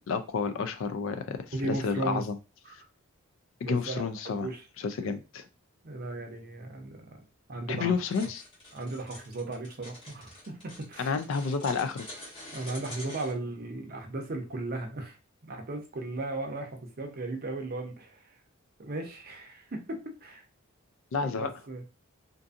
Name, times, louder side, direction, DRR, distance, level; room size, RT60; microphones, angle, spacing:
voice 1, 0.0-2.4 2.7-2.8 3.6-4.5 4.8-5.4 7.7-8.4 11.0-12.1 21.1-21.5, left 5 dB, 60° left, 0.3 m, -30 dB
voice 2, 1.5-2.2 3.6-4.6 5.8-8.0 8.7-11.2 12.5-15.2 15.4-18.3 18.8-19.8 20.2-20.4 21.2-21.8, right 2 dB, 45° right, 0.6 m, -36 dB
sound 1, 8.0-13.3, left 1 dB, 25° left, 1.1 m, -46 dB
2.6 x 2.5 x 2.4 m
head